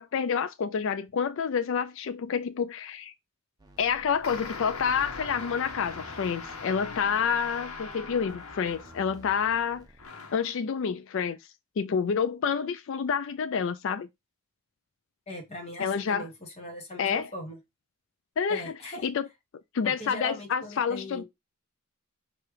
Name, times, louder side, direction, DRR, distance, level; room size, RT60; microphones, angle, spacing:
voice 1, 0.0-3.1 3.8-9.9 10.3-11.4 11.8-14.1 15.8-16.3 17.0-17.3 18.4-18.7 19.0-19.3 19.7-21.2, left 6 dB, 60° left, 0.4 m, -28 dB
sound 1, 3.6-10.1, right 1 dB, 20° right, 0.7 m, -53 dB
sound 2, 4.2-9.3 10.0-10.5, left 4 dB, 75° left, 0.9 m, -40 dB
voice 2, 15.3-17.6 18.5-19.0 19.8-21.2, left 1 dB, 30° left, 1.6 m, -40 dB
4.6 x 2.4 x 4.8 m
head